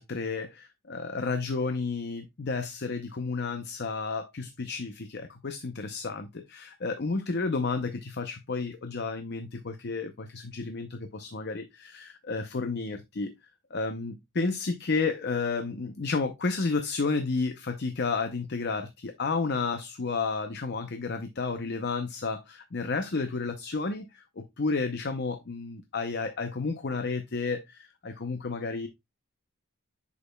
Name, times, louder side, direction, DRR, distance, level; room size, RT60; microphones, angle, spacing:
voice 1, 0.0-13.3 13.7-28.9, left 4 dB, 50° left, 0.7 m, -31 dB
8.3 x 6.4 x 2.2 m
head